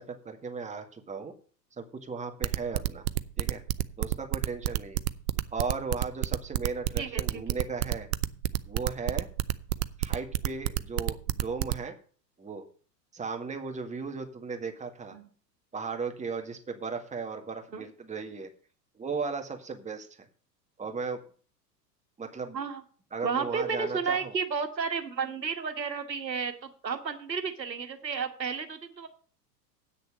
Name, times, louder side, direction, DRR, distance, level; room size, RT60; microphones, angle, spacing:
voice 1, 0.0-1.3 1.8-3.0 3.4-3.6 4.0-5.0 5.5-8.1 8.7-9.3 10.0-12.0 12.4-12.6 13.1-15.2 15.7-18.5 19.0-20.1 20.8-21.2 22.2-22.6 23.1-24.3, right 4 dB, 15° right, 4 dB, 1.8 m, -36 dB
sound 1, 2.4-11.8, right 15 dB, 60° right, 0.7 m, -28 dB
voice 2, 7.0-7.4 15.1-15.3 17.7-17.8 22.5-22.8 23.2-29.1, right 5 dB, 90° right, 7 dB, 1.5 m, -32 dB
8.7 x 6.6 x 7.5 m, 0.43 s
figure-of-eight pair, 90°, 49 cm